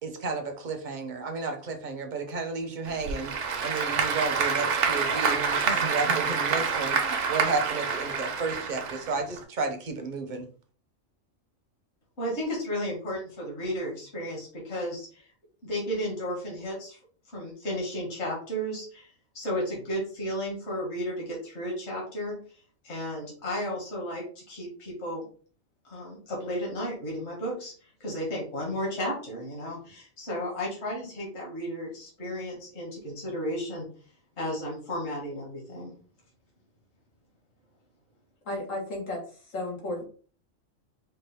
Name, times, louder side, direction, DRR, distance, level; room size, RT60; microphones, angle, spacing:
voice 1, 0.0-3.3 3.6-10.5, right 4 dB, 45° right, 5 dB, 0.7 m, -32 dB
Applause / Crowd, 2.9-9.4, right 5 dB, 70° right, 1.0 m, -27 dB
voice 2, 12.2-15.2 15.6-17.0 17.3-22.4 22.8-25.2 25.8-27.7 28.0-33.9 34.4-35.9, equal, 60° left, -2 dB, 1.7 m, -33 dB
voice 3, 38.4-40.0, left 1 dB, 90° left, -1 dB, 1.8 m, -34 dB
4.4 x 2.4 x 3.4 m, 0.42 s
omnidirectional pair, 1.3 m